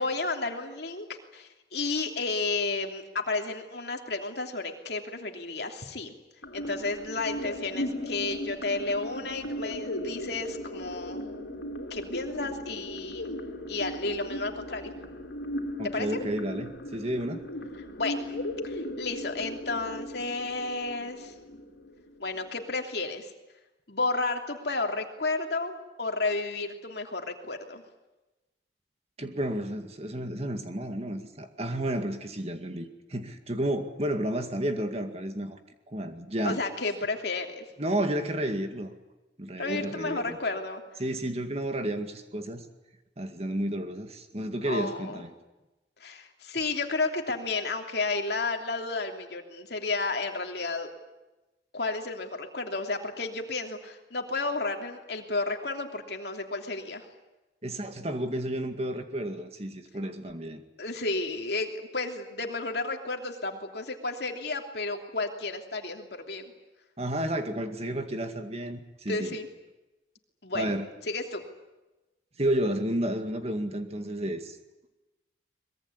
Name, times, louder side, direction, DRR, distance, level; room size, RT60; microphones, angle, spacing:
voice 1, 0.0-6.1 6.5-11.3 11.9-13.4 13.7-14.9 15.8-16.1 17.9-18.4 18.6-21.3 22.2-23.3 23.9-27.8 36.4-37.6 39.6-40.8 44.6-45.2 46.0-50.9 51.7-57.1 60.8-66.5 69.1-69.5 70.4-70.7 71.1-71.4, left 3 dB, 60° left, 3 dB, 3.0 m, -32 dB
sound 1, 6.4-22.4, left 1 dB, 80° left, 3.6 m, -37 dB
voice 2, 15.8-17.4 29.2-35.6 35.9-36.6 37.8-38.9 39.4-40.4 41.0-42.7 43.2-45.3 57.6-60.6 67.0-69.4 70.5-70.9 72.4-74.6, right 1 dB, 35° right, 7 dB, 2.1 m, -31 dB
23.0 x 22.0 x 9.8 m, 1.1 s
head